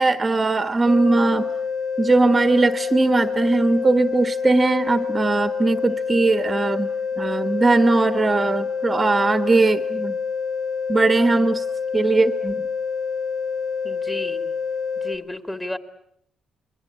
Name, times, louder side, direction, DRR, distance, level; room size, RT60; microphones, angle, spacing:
voice 1, 0.0-1.5 2.0-6.9 7.2-10.2 10.9-11.6 11.9-12.6, right 3 dB, 25° right, 10 dB, 1.5 m, -19 dB
sound 1, 0.9-15.2, left 5 dB, 75° left, 5.4 m, -27 dB
voice 2, 13.8-14.5 15.0-15.8, left 1 dB, 15° left, 9 dB, 2.6 m, -32 dB
28.0 x 22.5 x 8.6 m, 0.70 s
cardioid pair, 90°, 0 cm